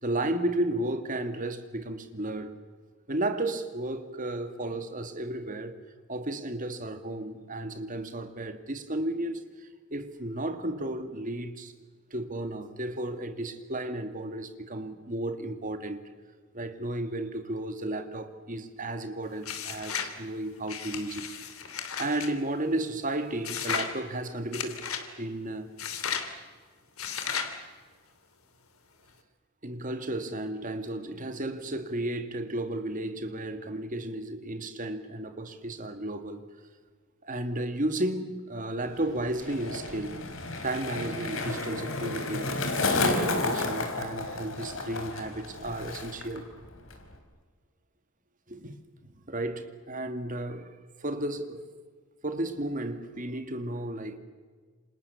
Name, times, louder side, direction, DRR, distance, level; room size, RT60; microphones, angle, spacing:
voice 1, 0.0-2.6 3.1-5.8 6.1-11.7 12.1-16.1 16.5-21.3 22.0-24.8 25.2-25.7 29.6-36.4 37.2-40.2 40.6-42.5 43.0-46.5 48.5-50.7 51.0-51.6 52.2-54.2, right 1 dB, 40° right, 2.2 m, -33 dB
sound 1, 19.4-20.1 20.7-22.3 23.4-23.9 24.5-25.1 25.8-26.3 27.0-27.5, left 7 dB, 80° left, 3.1 m, -34 dB
Skateboard, 38.8-46.4 46.6-47.2, left 3 dB, 65° left, 4.4 m, -32 dB
29.0 x 26.0 x 7.1 m
head